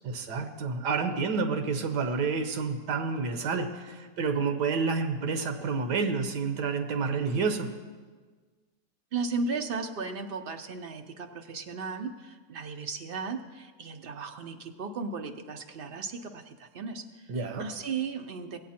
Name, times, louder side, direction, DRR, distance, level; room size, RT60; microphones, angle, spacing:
voice 1, 0.0-7.7 17.3-17.6, right 4 dB, 85° right, 7 dB, 1.6 m, -29 dB
voice 2, 9.1-18.6, right 4 dB, 60° right, 5 dB, 0.6 m, -36 dB
18.0 x 8.3 x 4.3 m, 1.4 s
omnidirectional pair, 1.7 m